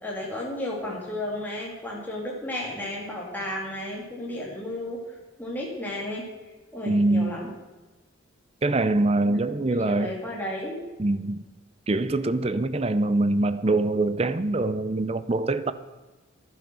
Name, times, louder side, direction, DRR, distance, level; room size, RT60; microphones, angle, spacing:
voice 1, 0.0-5.0 5.4-6.3 6.7-7.5 9.2-10.8, left 1 dB, 10° left, -3 dB, 2.5 m, -33 dB
voice 2, 6.9-7.4 8.6-10.1 11.0-11.4 11.9-15.7, right 2 dB, 30° right, 13 dB, 0.5 m, -24 dB
12.5 x 9.0 x 6.1 m, 1.2 s
head